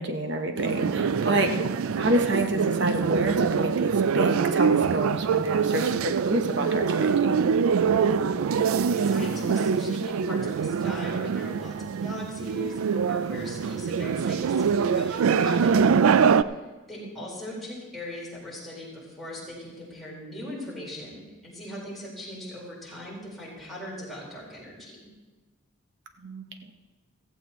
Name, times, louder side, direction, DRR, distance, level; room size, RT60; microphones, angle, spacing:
voice 1, 0.0-7.4 26.2-26.4, right 1 dB, 55° right, 6 dB, 1.1 m, -28 dB
sound 1, 0.6-16.4, right 6 dB, 80° right, 0.4 m, -24 dB
voice 2, 9.0-15.9 16.5-16.6 16.9-25.1, left 1 dB, ahead, -7 dB, 4.4 m, -39 dB
15.0 x 15.0 x 3.1 m, 1.2 s
head